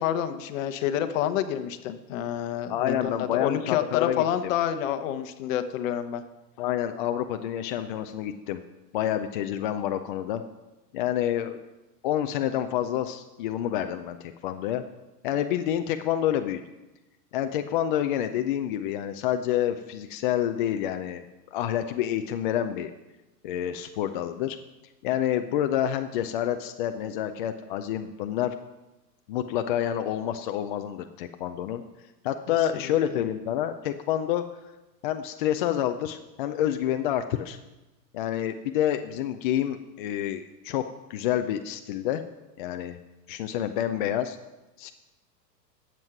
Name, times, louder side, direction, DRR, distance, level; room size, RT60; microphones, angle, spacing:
voice 1, 0.0-6.2 32.7-33.0, left 10 dB, 50° left, 9 dB, 1.0 m, -28 dB
voice 2, 2.7-4.2 6.6-8.6 8.9-10.4 10.9-11.6 12.0-14.8 15.2-16.6 17.3-21.2 21.5-22.9 23.4-24.6 25.0-28.5 29.3-31.8 32.2-34.4 35.0-37.6 38.1-40.8 41.1-42.2 42.6-43.0 43.3-44.4 44.8-44.9, left 11 dB, 35° left, 7 dB, 0.4 m, -28 dB
10.5 x 7.6 x 5.9 m, 1.0 s
hypercardioid pair, 125°, 50 cm